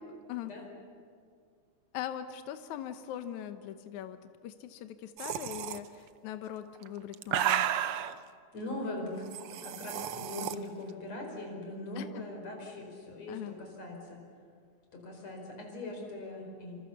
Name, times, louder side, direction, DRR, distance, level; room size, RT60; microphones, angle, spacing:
voice 1, 1.9-7.6 12.0-12.2 13.3-13.5, left 10 dB, 80° left, 9 dB, 2.3 m, -41 dB
sound 1, 5.2-5.8 6.8-8.1 9.3-10.5, right 11 dB, 75° right, 1.3 m, -32 dB
voice 2, 8.5-9.3 9.5-14.2 14.9-16.8, left 2 dB, 60° left, 1 dB, 6.0 m, -41 dB
27.0 x 26.5 x 7.1 m, 2.2 s
omnidirectional pair, 3.4 m